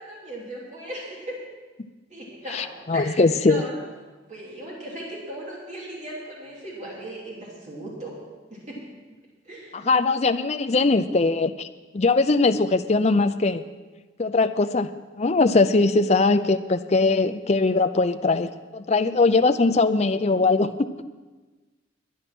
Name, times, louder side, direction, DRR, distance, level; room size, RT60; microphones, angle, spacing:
voice 1, 0.0-1.4 2.1-3.9 4.3-8.2 8.5-8.8 9.4-9.9, right 1 dB, 40° right, -5 dB, 3.0 m, -37 dB
voice 2, 2.5-3.6 9.7-11.7 11.9-13.6 14.2-14.9 15.2-20.7, left 3 dB, 35° left, 11 dB, 0.5 m, -21 dB
12.0 x 10.0 x 6.1 m, 1.3 s
head